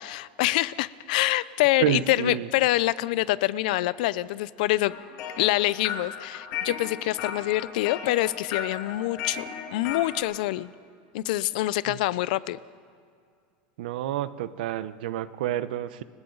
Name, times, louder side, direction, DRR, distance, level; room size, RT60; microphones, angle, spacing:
voice 1, 0.0-4.9 5.4-9.4 9.7-10.7 11.1-12.6, left 17 dB, 65° left, 18 dB, 0.6 m, -25 dB
voice 2, 1.8-2.5 11.9-12.0 13.8-16.0, right 12 dB, 80° right, 14 dB, 0.8 m, -29 dB
sound 1, 4.9-10.2, left 7 dB, 45° left, 2.9 m, -36 dB
30.0 x 24.5 x 4.0 m, 2.2 s
supercardioid pair, 170°, 5 cm